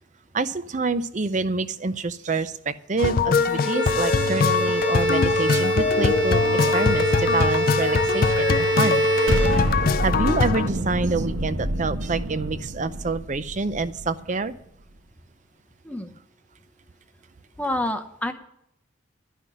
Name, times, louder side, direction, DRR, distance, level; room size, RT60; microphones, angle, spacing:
voice 1, 0.3-9.0 10.0-14.5, right 3 dB, 35° right, 13 dB, 0.5 m, -27 dB
sound 1, 3.0-10.7, left 5 dB, 45° left, 0.4 m, -23 dB
Bowed string instrument, 3.4-10.2, right 1 dB, 55° right, 1.3 m, -24 dB
Explosion, 9.3-14.4, right 1 dB, 75° right, 1.1 m, -28 dB
voice 2, 17.6-18.3, left 1 dB, 5° left, 7 dB, 0.8 m, -27 dB
12.0 x 5.8 x 9.3 m, 0.74 s
head